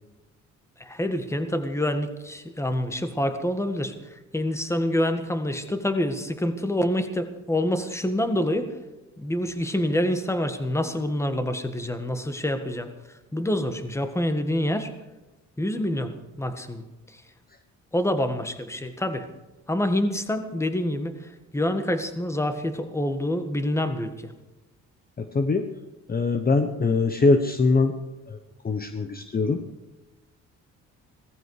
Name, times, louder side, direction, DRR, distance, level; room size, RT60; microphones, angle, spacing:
voice 1, 0.8-8.7 9.2-12.9 13.3-14.9 15.6-16.8 17.1-17.2 17.9-19.3 19.7-24.3, left 1 dB, 10° left, 8 dB, 1.7 m, -27 dB
voice 2, 26.1-27.9 28.3-28.4 28.6-29.6, left 3 dB, 30° left, 8 dB, 1.1 m, -22 dB
17.0 x 14.5 x 4.9 m, 1.1 s
cardioid pair, 90°, 30 cm